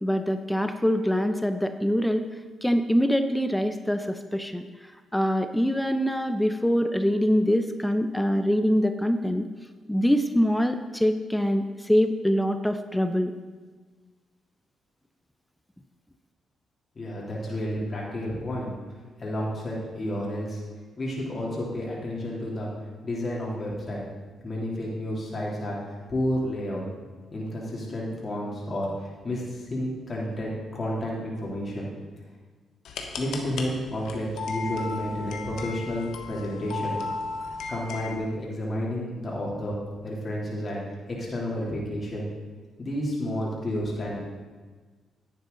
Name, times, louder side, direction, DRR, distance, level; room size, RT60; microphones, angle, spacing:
voice 1, 0.0-2.3 2.6-9.5 9.9-13.3, equal, 5° left, 8 dB, 0.7 m, -24 dB
voice 2, 16.9-18.7 19.2-20.6 21.0-22.7 23.0-24.0 24.4-26.8 27.3-31.9 33.2-36.9 37.7-39.8 40.0-40.8 41.2-42.3 42.8-44.2, left 1 dB, 45° left, -5 dB, 3.2 m, -31 dB
sound 1, 32.8-38.2, left 3 dB, 75° left, 1.2 m, -35 dB
10.5 x 9.3 x 4.0 m, 1.4 s
supercardioid pair, 50°, 0 cm